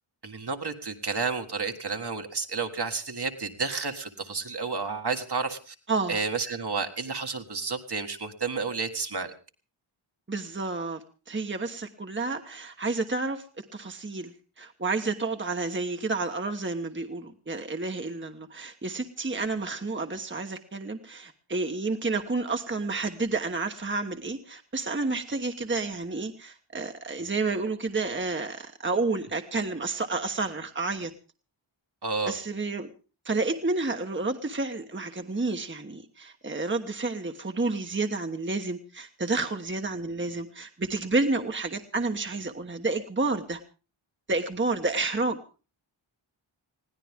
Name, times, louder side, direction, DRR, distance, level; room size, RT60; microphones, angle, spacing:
voice 1, 0.2-5.8 6.1-9.3 32.0-32.4, right 4 dB, 55° right, 5 dB, 1.8 m, -31 dB
voice 2, 5.9-6.2 10.3-13.4 13.7-31.1 32.2-32.9 33.2-43.6 44.3-45.4, right 3 dB, 25° right, 5 dB, 1.3 m, -30 dB
21.0 x 16.0 x 3.7 m, 0.34 s
wide cardioid pair, 80°, 48 cm